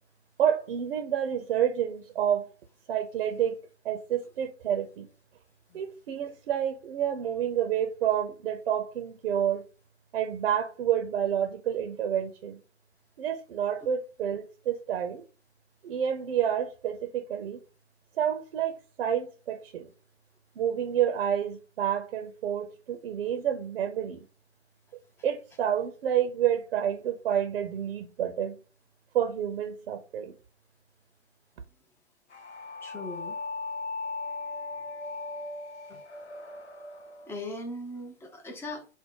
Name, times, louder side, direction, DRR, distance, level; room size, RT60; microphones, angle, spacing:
voice 1, 0.4-2.5 2.9-3.6 3.8-5.1 5.7-9.6 10.1-12.6 13.2-15.2 15.8-17.6 18.2-19.9 20.6-24.3 25.2-28.6 29.1-30.3, right 9 dB, 60° right, 0.7 m, -29 dB
sound 1, 32.3-37.4, left 3 dB, 80° left, 0.9 m, -38 dB
voice 2, 32.8-33.4 35.9-36.0 37.3-38.9, left 1 dB, 5° left, 0.5 m, -39 dB
4.4 x 2.1 x 3.7 m
figure-of-eight pair, 115°, 34 cm